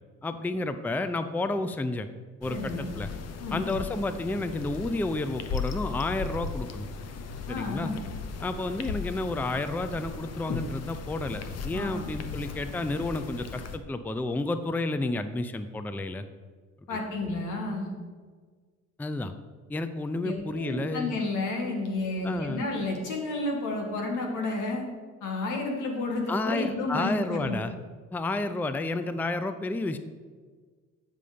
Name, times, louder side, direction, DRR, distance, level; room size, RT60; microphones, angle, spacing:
voice 1, 0.2-2.1 2.4-3.1 3.5-6.9 7.5-7.9 8.4-16.2 19.0-19.3 19.7-21.1 22.2-22.6 26.3-27.7 28.1-30.0, left 2 dB, 5° left, 10 dB, 0.4 m, -31 dB
sound 1, 2.4-13.8, left 5 dB, 55° left, 0.8 m, -37 dB
voice 2, 2.5-2.9 3.4-3.7 7.5-8.0 11.7-12.0 16.9-17.9 20.2-24.8 25.2-27.6, left 2 dB, 85° left, 1 dB, 1.8 m, -31 dB
8.9 x 5.4 x 5.0 m, 1.5 s
cardioid pair, 90°, 30 cm